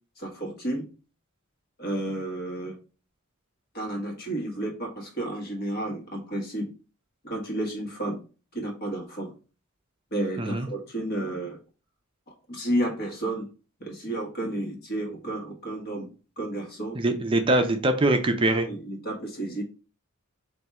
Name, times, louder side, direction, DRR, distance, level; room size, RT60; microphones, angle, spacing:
voice 1, 0.2-0.9 1.8-2.8 3.7-6.6 7.2-8.2 8.5-9.3 10.1-11.6 12.5-13.5 13.8-16.1 16.4-17.0 18.6-19.6, right 1 dB, 50° left, 1 dB, 1.3 m, -31 dB
voice 2, 17.0-18.7, right 2 dB, 25° right, 6 dB, 0.4 m, -23 dB
3.5 x 2.7 x 4.2 m, 0.35 s
head